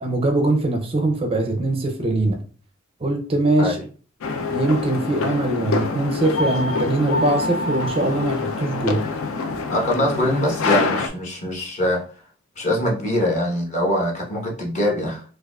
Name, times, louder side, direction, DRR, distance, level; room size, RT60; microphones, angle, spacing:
voice 1, 0.0-2.4 3.0-3.8 4.5-9.0, right 2 dB, 25° right, 4 dB, 0.4 m, -22 dB
sound 1, 4.2-11.1, left 3 dB, 70° left, 0.4 m, -25 dB
voice 2, 9.7-12.0 12.6-15.2, left 1 dB, 35° left, -1 dB, 1.0 m, -23 dB
4.5 x 2.3 x 2.3 m, 0.40 s
head